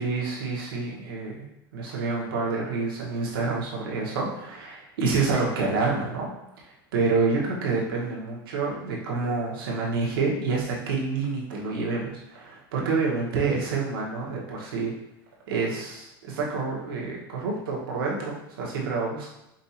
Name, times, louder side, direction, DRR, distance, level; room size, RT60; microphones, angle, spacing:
voice 1, 0.0-1.4 1.7-6.3 6.9-14.9 15.5-19.3, right 4 dB, 80° right, -3 dB, 1.3 m, -28 dB
5.4 x 2.6 x 2.8 m, 0.88 s
supercardioid pair, 155°, 12 cm